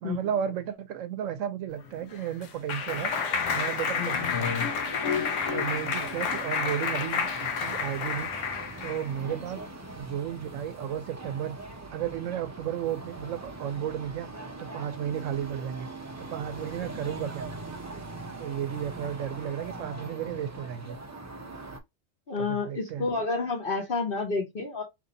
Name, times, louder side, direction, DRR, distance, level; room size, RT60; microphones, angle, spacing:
voice 1, 0.0-3.1 3.5-4.7 5.5-7.3 7.6-8.3 8.8-9.6 9.9-11.6 11.9-14.3 14.6-15.9 16.2-17.5 18.4-21.0 22.4-23.1, right 9 dB, 85° right, 1.0 m, -33 dB
Clapping, 1.8-9.1, left 6 dB, 70° left, 0.9 m, -30 dB
sound 1, 2.8-21.8, right 2 dB, 25° right, 0.3 m, -42 dB
voice 2, 4.0-4.3 9.3-9.4 22.3-24.8, left 4 dB, 50° left, 1.0 m, -30 dB
3.0 x 2.6 x 3.9 m
omnidirectional pair, 1.3 m